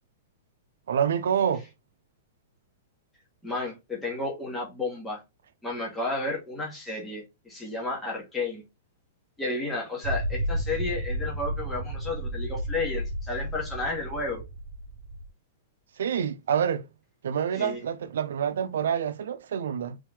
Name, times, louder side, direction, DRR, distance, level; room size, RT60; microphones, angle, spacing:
voice 1, 0.9-1.6 16.0-16.8 17.2-20.0, right 8 dB, 80° right, 0.5 m, -27 dB
voice 2, 3.4-5.2 5.6-8.6 9.4-14.4 17.5-17.8, left 2 dB, 5° left, 1.1 m, -32 dB
sound 1, 10.0-15.3, right 1 dB, 55° right, 1.1 m, -32 dB
3.7 x 3.1 x 3.5 m
supercardioid pair, 175°, 0 cm